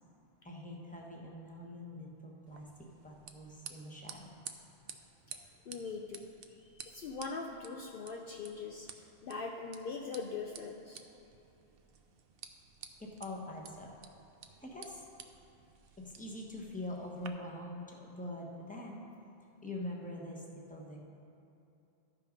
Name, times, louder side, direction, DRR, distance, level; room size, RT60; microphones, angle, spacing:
voice 1, 0.4-4.4 13.0-13.9 14.6-15.0 16.0-19.0 19.6-21.0, left 1 dB, 10° left, -1 dB, 1.1 m, -44 dB
sound 1, 2.5-17.3, right 7 dB, 65° right, 0.8 m, -53 dB
voice 2, 5.7-6.3 6.7-8.9 9.2-11.0, left 4 dB, 60° left, 2 dB, 0.7 m, -41 dB
13.0 x 5.7 x 5.2 m, 2.8 s
omnidirectional pair, 1.1 m